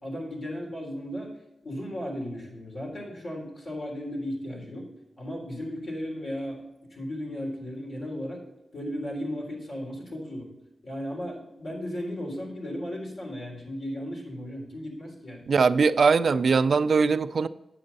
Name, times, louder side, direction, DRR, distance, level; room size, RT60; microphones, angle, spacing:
voice 1, 0.0-1.3 1.6-4.9 5.2-6.6 6.9-8.4 8.7-10.5 10.8-15.4, equal, 60° left, -1 dB, 3.5 m, -35 dB
voice 2, 15.5-17.5, right 5 dB, 65° right, 12 dB, 0.4 m, -21 dB
8.6 x 7.8 x 4.0 m, 0.94 s
wide cardioid pair, 115°, 0 cm